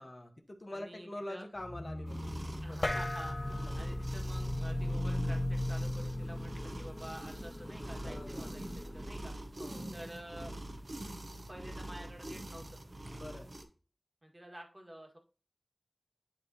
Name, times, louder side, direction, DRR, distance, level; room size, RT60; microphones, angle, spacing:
voice 1, 0.0-2.4 2.7-2.9 8.0-8.6 9.6-10.0 13.1-13.5, left 1 dB, 45° left, 5 dB, 1.1 m, -45 dB
voice 2, 0.7-1.5 2.6-3.4 3.7-9.3 9.9-10.5 11.5-12.8 14.2-15.2, right 1 dB, 30° right, 2 dB, 1.6 m, -49 dB
sound 1, 1.5-9.2, left 1 dB, 25° left, 0.4 m, -44 dB
sound 2, 2.1-13.6, right 1 dB, 60° right, 1.0 m, -45 dB
sound 3, 2.8-9.6, left 1 dB, 65° left, 0.8 m, -37 dB
10.0 x 3.4 x 2.7 m, 0.36 s
wide cardioid pair, 60°, 0 cm